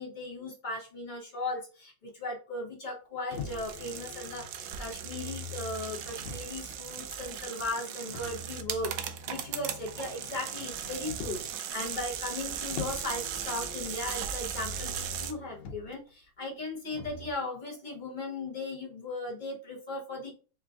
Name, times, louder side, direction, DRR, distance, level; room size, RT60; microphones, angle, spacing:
voice 1, 0.0-20.3, left 2 dB, 55° left, -2 dB, 0.5 m, -37 dB
Motor vehicle (road), 3.3-6.8 8.1-11.6 12.7-16.0 16.9-17.3, left 4 dB, 90° left, 1.5 m, -44 dB
sound 1, 3.3-15.3, right 9 dB, 75° right, 1.1 m, -38 dB
4.5 x 2.4 x 3.7 m, 0.37 s
omnidirectional pair, 2.1 m